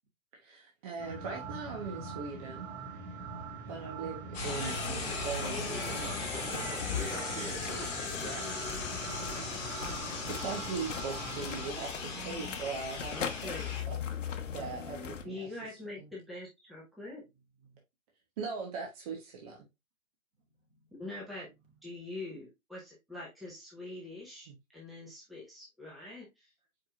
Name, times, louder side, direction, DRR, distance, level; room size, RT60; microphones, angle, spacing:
voice 1, 0.4-2.8 3.7-5.8 10.3-14.0 14.5-15.5 16.0-16.1 18.4-19.6, right 5 dB, 25° right, 1.0 m, -40 dB
sound 1, 1.0-11.7, right 4 dB, 40° right, 2.1 m, -43 dB
sound 2, 4.3-13.8, left 4 dB, 30° left, 2.7 m, -38 dB
voice 2, 4.5-6.2 11.8-12.6 13.1-13.7 15.2-17.2 21.0-21.5 21.8-26.5, left 2 dB, ahead, 1.0 m, -44 dB
sound 3, 4.6-15.2, left 7 dB, 60° left, 0.9 m, -41 dB
voice 3, 5.4-8.7 17.6-17.8 20.7-20.9, right 2 dB, 65° right, 2.5 m, -45 dB
4.8 x 4.5 x 2.4 m
figure-of-eight pair, 140°, 41 cm